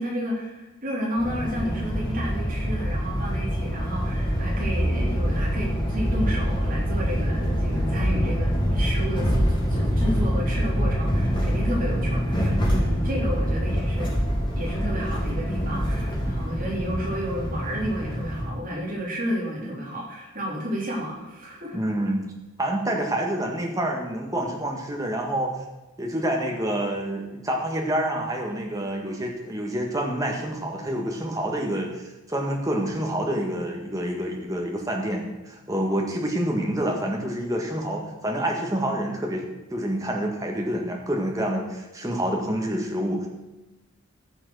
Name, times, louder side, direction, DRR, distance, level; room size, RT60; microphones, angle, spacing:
voice 1, 0.0-14.1 14.6-21.8, equal, 40° right, -4 dB, 3.5 m, -31 dB
sound 1, 1.2-18.4, equal, 25° left, 3.4 m, -25 dB
voice 2, 21.7-22.3 22.6-25.5 26.0-43.3, right 1 dB, 15° right, 0 dB, 1.8 m, -27 dB
14.5 x 6.2 x 6.4 m, 1.1 s
head